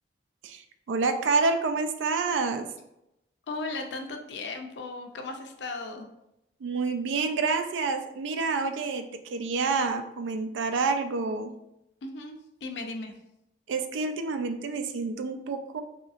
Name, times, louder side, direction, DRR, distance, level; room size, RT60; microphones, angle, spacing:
voice 1, 0.4-2.7 6.6-11.5 13.7-15.8, right 4 dB, 85° right, 7 dB, 0.3 m, -28 dB
voice 2, 3.5-6.1 12.0-13.1, left 3 dB, 70° left, 4 dB, 0.4 m, -36 dB
2.7 x 2.5 x 2.4 m, 0.85 s
head